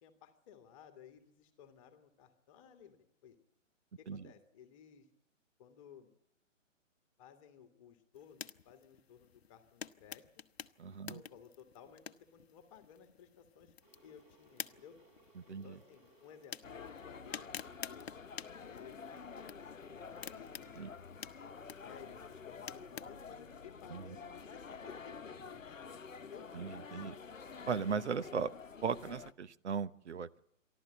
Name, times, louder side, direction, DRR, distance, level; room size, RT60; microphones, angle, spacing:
voice 1, 0.0-3.4 4.0-5.1 5.6-6.1 7.2-10.4 11.1-13.7 14.0-15.0 15.5-18.1 18.6-20.8 21.4-21.6 21.8-27.1, left 8 dB, 25° left, 6 dB, 1.8 m, -57 dB
sound 1, 8.1-23.2, left 7 dB, 55° left, 0.9 m, -51 dB
voice 2, 10.8-11.2 15.4-15.8 20.8-20.9 23.9-24.2 26.5-27.2 27.7-28.5 28.8-30.4, right 6 dB, 60° right, 14 dB, 0.9 m, -38 dB
Water / Boiling, 13.8-18.9, right 1 dB, 20° right, 7.8 m, -67 dB
sound 2, 16.6-29.3, left 5 dB, 80° left, 0.9 m, -49 dB
28.0 x 12.5 x 8.9 m, 0.79 s
figure-of-eight pair, 135°, 38 cm